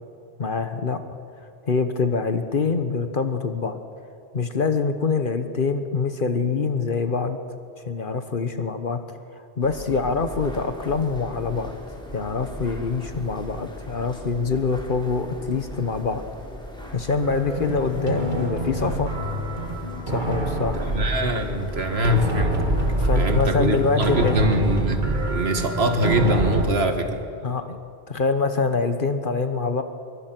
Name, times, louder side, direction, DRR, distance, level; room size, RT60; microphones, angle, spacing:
voice 1, 0.4-1.0 1.6-3.8 4.3-7.4 7.9-9.2 9.6-11.7 12.1-16.2 16.9-19.1 20.1-20.8 23.0-24.4 27.4-27.8 28.1-29.8, left 4 dB, 55° left, 8 dB, 1.3 m, -25 dB
sound 1, 9.6-27.0, equal, 5° left, 3.5 m, -39 dB
sound 2, 17.2-26.7, right 2 dB, 50° right, 1.9 m, -26 dB
voice 2, 20.7-22.7 23.1-27.3, equal, 75° right, 6 dB, 2.0 m, -23 dB
24.0 x 23.0 x 6.1 m, 2.5 s
omnidirectional pair, 1.1 m